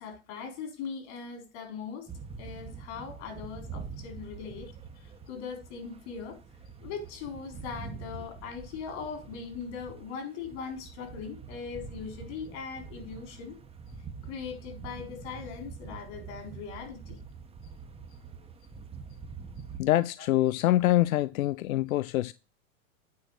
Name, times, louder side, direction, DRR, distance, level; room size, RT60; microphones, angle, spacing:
voice 1, 0.0-2.1 2.4-4.7 5.0-6.4 6.8-13.6 14.2-17.2 20.2-20.3, left 6 dB, 55° left, 4.0 m, -40 dB
sound 1, 2.1-19.8, right 5 dB, 15° right, 1.2 m, -45 dB
voice 2, 19.8-22.3, left 15 dB, 85° left, 0.5 m, -25 dB
9.5 x 4.3 x 6.4 m
hypercardioid pair, 125°, 41 cm